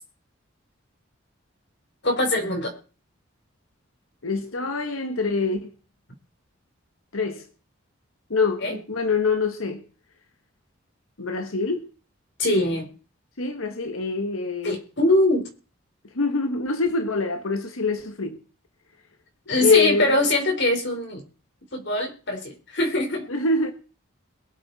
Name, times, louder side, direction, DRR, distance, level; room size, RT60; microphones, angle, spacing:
voice 1, 2.0-2.7 8.6-8.8 12.4-12.9 14.6-15.4 19.5-21.2 21.7-23.3, left 1 dB, 55° left, 4.3 m, -22 dB
voice 2, 4.2-5.7 7.1-7.4 8.3-9.8 11.2-11.9 13.4-14.8 16.1-18.4 19.6-20.1 23.3-23.7, left 3 dB, 90° left, 1.4 m, -25 dB
22.5 x 8.4 x 4.2 m
head